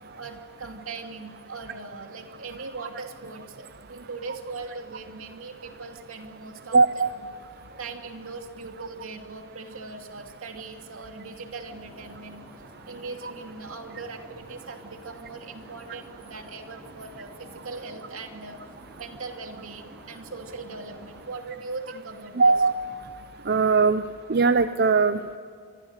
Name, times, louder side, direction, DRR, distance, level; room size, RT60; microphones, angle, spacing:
voice 1, 0.2-6.8 7.2-7.4 7.8-12.5 12.9-18.6 19.0-22.5, right 3 dB, 70° right, 4 dB, 2.7 m, -40 dB
voice 2, 6.7-7.1 22.4-22.8 23.5-24.0 24.3-25.4, right 4 dB, 45° right, 11 dB, 0.6 m, -20 dB
sound 1, 11.7-21.3, equal, 5° left, 6.2 m, -50 dB
28.0 x 22.5 x 6.5 m, 2.2 s
head